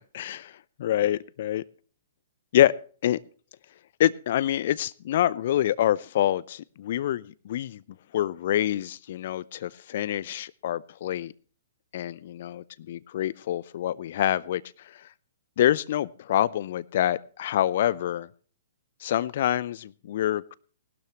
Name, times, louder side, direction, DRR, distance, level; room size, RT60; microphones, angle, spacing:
voice 1, 0.1-1.6 2.5-2.7 3.0-3.2 4.0-7.8 8.1-11.3 11.9-15.1 15.6-18.3 19.0-20.5, left 12 dB, 50° left, 21 dB, 0.5 m, -26 dB
19.5 x 12.5 x 3.0 m, 0.41 s
figure-of-eight pair, 115°, 0 cm